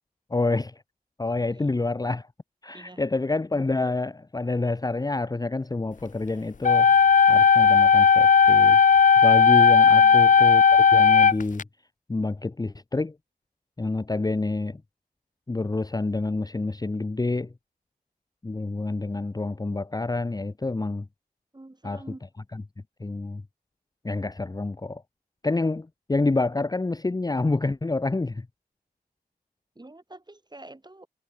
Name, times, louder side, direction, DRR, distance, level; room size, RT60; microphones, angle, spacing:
voice 1, 0.3-0.8 1.2-2.3 2.6-6.9 7.3-8.8 9.2-11.6 12.1-13.2 13.8-14.8 15.5-17.5 18.4-21.1 21.8-22.0 22.5-22.6 23.0-23.4 24.0-25.0 25.4-28.5, left 3 dB, 25° left, 0.7 m, -28 dB
voice 2, 2.7-3.1 9.9-10.4 21.5-22.3 29.8-31.1, right 2 dB, 25° right, 5.4 m, -47 dB
sound 1, 6.6-11.6, left 6 dB, 55° left, 0.5 m, -16 dB
cardioid pair, 50°, 16 cm